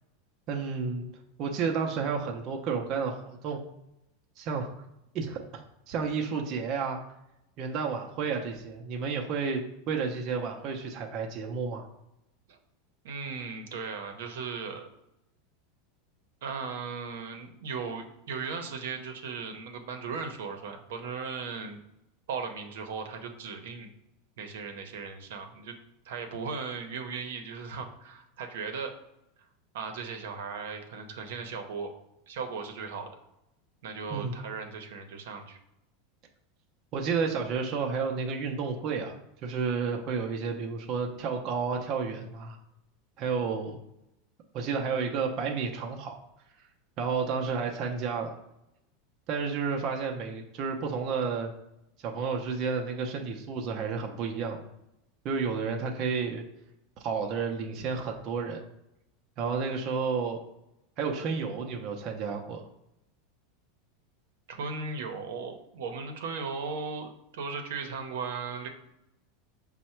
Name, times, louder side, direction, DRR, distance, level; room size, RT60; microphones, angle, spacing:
voice 1, 0.5-1.1 1.4-3.7 4.4-4.7 5.1-7.0 7.6-9.6 9.9-11.9 34.1-34.4 36.9-42.6 43.2-43.8 44.5-46.2 47.0-48.3 49.3-51.5 52.0-54.6 55.2-56.4 57.0-58.6 59.4-60.4 61.0-62.6, right 5 dB, 40° right, 2 dB, 0.5 m, -31 dB
voice 2, 13.0-14.9 16.4-21.8 22.3-23.9 24.4-25.7 26.0-28.9 29.7-31.9 32.3-33.1 33.8-35.6 64.5-68.7, right 5 dB, 80° right, 5 dB, 0.7 m, -37 dB
5.4 x 2.1 x 4.3 m, 0.85 s
supercardioid pair, 150°, 0 cm